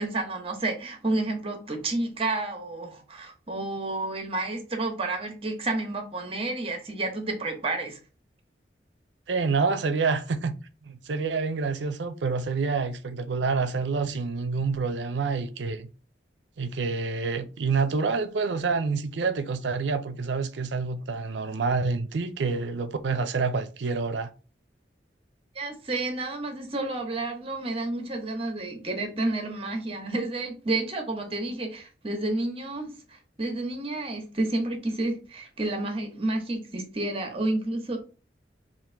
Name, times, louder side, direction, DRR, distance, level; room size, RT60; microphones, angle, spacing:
voice 1, 0.0-8.0 25.5-32.9 33.4-38.0, right 2 dB, 30° right, 1.0 m, -30 dB
voice 2, 9.3-10.6 10.9-15.9 16.6-24.3, right 4 dB, 80° right, 0.5 m, -27 dB
3.7 x 2.5 x 4.5 m
head